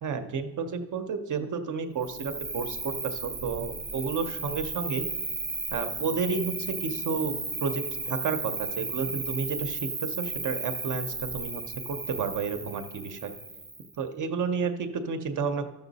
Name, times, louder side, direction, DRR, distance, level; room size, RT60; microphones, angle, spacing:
voice 1, 0.0-5.1 5.7-13.3 14.0-15.7, right 5 dB, 40° right, 7 dB, 0.7 m, -31 dB
Cricket, 2.0-14.0, right 3 dB, 10° right, 0.3 m, -35 dB
12.5 x 6.9 x 4.0 m, 1.0 s
cardioid pair, 165°, 46 cm